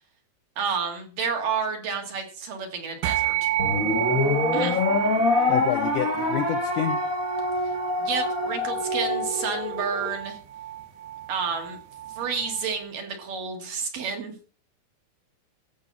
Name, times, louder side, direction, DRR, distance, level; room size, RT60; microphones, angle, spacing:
voice 1, 0.6-3.5 4.5-4.8 7.6-7.7 8.0-10.4 11.3-11.8 12.1-14.4, right 6 dB, 60° right, 3 dB, 3.8 m, -30 dB
sound 1, 3.0-12.7, right 14 dB, 80° right, 1.7 m, -31 dB
sound 2, 3.6-10.1, left 3 dB, 30° left, 1.5 m, -26 dB
voice 2, 5.5-7.0, left 11 dB, 85° left, 7 dB, 1.8 m, -28 dB
14.5 x 5.2 x 7.1 m, 0.39 s
omnidirectional pair, 4.6 m